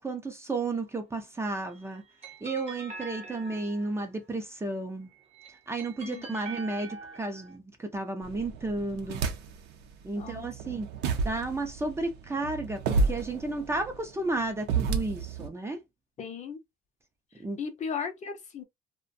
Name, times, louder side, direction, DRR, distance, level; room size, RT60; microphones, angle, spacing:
voice 1, 0.0-2.0 2.4-5.1 5.7-9.2 10.0-10.9 11.2-15.8 17.4-17.6, right 2 dB, 15° right, 0.5 m, -33 dB
sound 1, 1.7-4.2 5.1-7.6, right 3 dB, 40° right, 0.9 m, -44 dB
sound 2, 8.2-9.7 10.2-15.5, right 4 dB, 85° right, 0.6 m, -31 dB
voice 2, 10.2-10.7 16.2-16.6 17.6-18.6, left 6 dB, 45° left, 0.7 m, -36 dB
2.5 x 2.2 x 2.5 m
cardioid pair, 110°, 17 cm